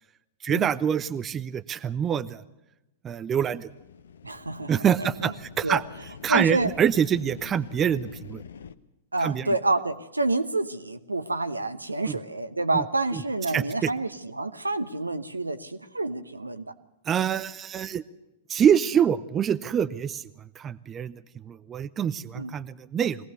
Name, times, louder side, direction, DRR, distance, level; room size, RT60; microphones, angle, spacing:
voice 1, 0.4-2.4 3.0-3.7 4.7-5.8 6.2-8.4 9.2-9.5 12.1-12.2 12.7-12.8 13.1-13.2 13.5-13.9 17.1-18.0 18.5-20.3 20.6-23.2, right 8 dB, 25° right, 14 dB, 0.7 m, -25 dB
sound 1, 3.6-8.7, left 7 dB, 65° left, 0.9 m, -45 dB
voice 2, 4.2-4.7 5.0-5.3 5.6-5.8 6.3-6.7 9.1-16.7 22.3-22.5, right 2 dB, 80° right, 11 dB, 1.0 m, -28 dB
22.5 x 17.5 x 6.7 m, 0.93 s
figure-of-eight pair, 95°, 0 cm